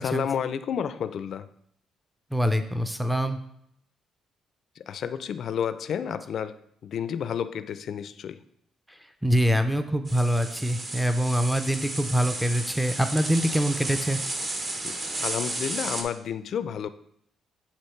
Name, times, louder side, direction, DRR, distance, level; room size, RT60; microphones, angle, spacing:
voice 1, 0.0-1.5 4.8-6.5 6.8-8.4 14.8-14.9 15.2-16.9, left 8 dB, 65° left, 12 dB, 0.4 m, -30 dB
voice 2, 2.3-3.4 9.2-14.2, equal, ahead, 7 dB, 0.4 m, -24 dB
sound 1, 10.0-16.0, right 2 dB, 35° right, 0.8 m, -33 dB
8.1 x 3.0 x 4.4 m, 0.71 s
cardioid pair, 90°, 0 cm